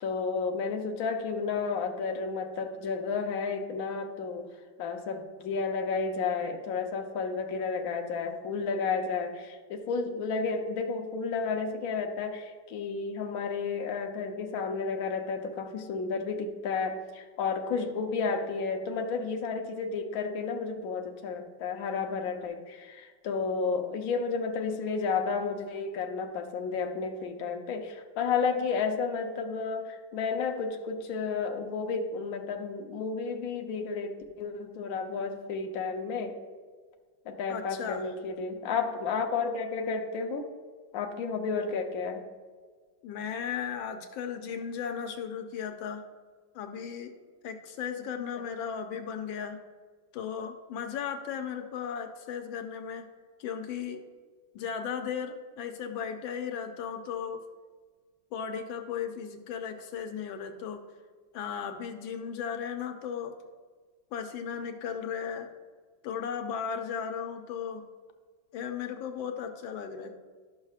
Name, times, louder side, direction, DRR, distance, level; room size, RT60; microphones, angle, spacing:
voice 1, 0.0-4.5 4.8-36.4 37.3-40.5 40.9-42.2, left 5 dB, 60° left, 3 dB, 1.1 m, -32 dB
voice 2, 37.5-38.1 43.0-46.0 46.5-47.1 47.4-49.6 50.1-53.1 53.4-54.0 54.5-57.4 58.3-60.8 61.3-63.3 64.1-65.5 66.0-67.8 68.5-70.1, left 7 dB, 85° left, 6 dB, 1.5 m, -36 dB
12.0 x 6.3 x 2.4 m, 1.5 s
omnidirectional pair, 2.1 m